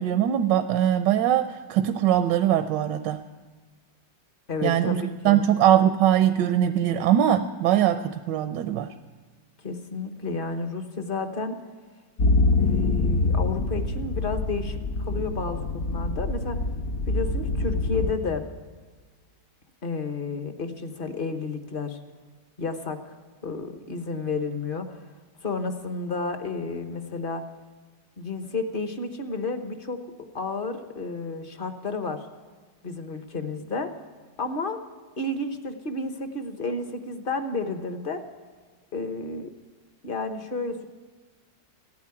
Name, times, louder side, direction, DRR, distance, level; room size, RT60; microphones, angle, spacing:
voice 1, 0.0-3.2 4.6-8.9, right 11 dB, 80° right, 9 dB, 1.3 m, -22 dB
voice 2, 4.5-5.4 9.6-11.6 12.6-16.6 17.1-18.5 19.8-22.0 22.6-23.2 23.4-25.0 25.4-27.4 28.2-30.0 30.3-32.3 32.8-33.9 34.4-34.8 35.2-38.2 38.9-39.5 40.0-40.8, left 3 dB, 40° left, 8 dB, 0.9 m, -31 dB
sound 1, 12.2-18.1, left 2 dB, 60° left, 1.4 m, -25 dB
15.5 x 9.6 x 9.6 m, 1.5 s
omnidirectional pair, 1.9 m